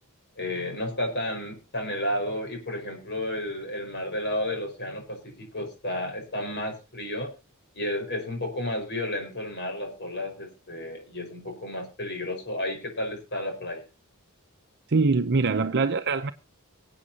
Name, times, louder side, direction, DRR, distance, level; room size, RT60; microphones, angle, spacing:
voice 1, 0.4-7.3 7.7-13.9, left 1 dB, 50° left, 5.1 m, -32 dB
voice 2, 14.9-16.3, right 4 dB, 50° right, 0.7 m, -23 dB
24.0 x 8.6 x 2.8 m
head